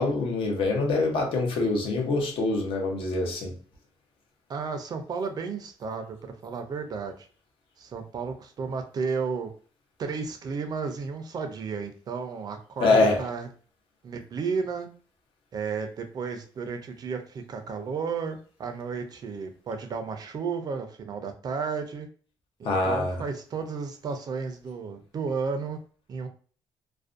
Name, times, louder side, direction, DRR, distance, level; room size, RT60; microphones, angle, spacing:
voice 1, 0.0-3.5 12.8-13.2 22.6-23.2, left 3 dB, 75° left, 0.7 m, -24 dB
voice 2, 4.5-7.3 7.8-9.5 10.0-13.5 14.0-14.9 15.5-22.1 22.6-25.8 26.1-26.3, right 5 dB, 45° right, 0.4 m, -33 dB
2.5 x 2.1 x 2.4 m
cardioid pair, 135°, 9 cm